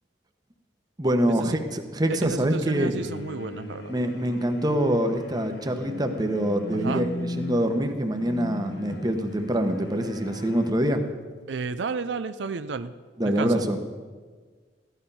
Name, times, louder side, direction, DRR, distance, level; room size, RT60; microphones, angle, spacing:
voice 1, 1.0-2.9 3.9-11.0 13.2-13.9, right 1 dB, 25° right, 6 dB, 1.1 m, -25 dB
voice 2, 2.1-3.9 6.7-7.1 11.5-12.9 13.2-13.6, right 4 dB, 80° right, 11 dB, 0.5 m, -32 dB
sound 1, 3.0-10.7, left 2 dB, 70° left, 1.0 m, -38 dB
15.0 x 11.5 x 5.6 m, 1.5 s
head